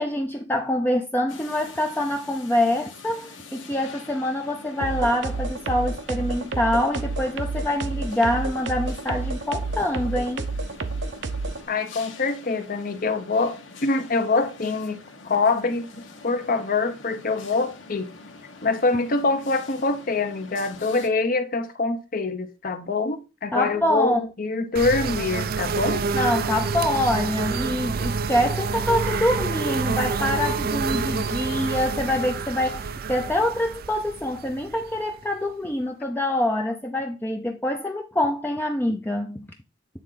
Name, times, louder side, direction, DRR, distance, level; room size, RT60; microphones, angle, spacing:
voice 1, 0.0-10.5 23.5-24.2 26.1-39.5, left 1 dB, 10° left, 0.5 m, -25 dB
sound 1, 1.3-21.1, left 4 dB, 85° left, 1.4 m, -45 dB
sound 2, 4.8-11.6, right 3 dB, 65° right, 0.8 m, -30 dB
voice 2, 11.7-18.1 18.6-26.1, left 3 dB, 50° left, 0.9 m, -25 dB
sound 3, 24.8-35.4, right 5 dB, 50° right, 0.4 m, -28 dB
9.0 x 3.9 x 3.9 m
head